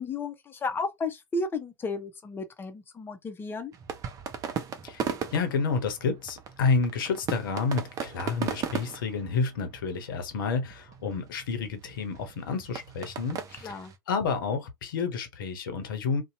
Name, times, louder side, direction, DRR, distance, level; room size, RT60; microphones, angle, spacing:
voice 1, 0.0-3.7 13.6-13.9, left 3 dB, 20° left, 0.6 m, -33 dB
sound 1, 3.7-14.0, right 7 dB, 30° right, 0.6 m, -38 dB
voice 2, 4.8-13.8 14.1-16.2, left 5 dB, 65° left, 0.7 m, -30 dB
2.6 x 2.1 x 2.7 m
figure-of-eight pair, 90°, 12 cm